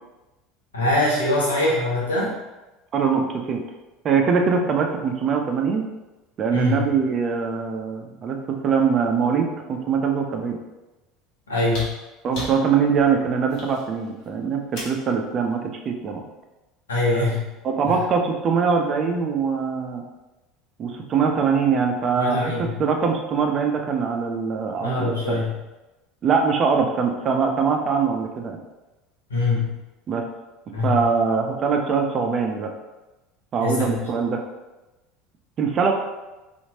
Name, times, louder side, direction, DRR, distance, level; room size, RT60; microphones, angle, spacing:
voice 1, 0.7-2.3 6.5-6.8 11.5-11.9 16.9-17.5 17.9-18.0 22.1-22.7 24.8-25.6 29.3-29.8 30.7-31.0 33.6-34.0, left 2 dB, 85° left, -5 dB, 0.9 m, -23 dB
voice 2, 2.9-3.6 4.0-5.8 6.4-10.6 12.2-16.2 17.6-20.0 20.8-25.4 26.2-28.6 30.1-30.3 30.8-32.7 33.5-34.4 35.6-35.9, right 5 dB, 40° right, 3 dB, 0.5 m, -22 dB
sound 1, 11.7-15.1 16.5-16.6, left 1 dB, 55° left, 0.9 m, -37 dB
2.8 x 2.5 x 2.8 m, 1.1 s
hypercardioid pair, 75°, 0 cm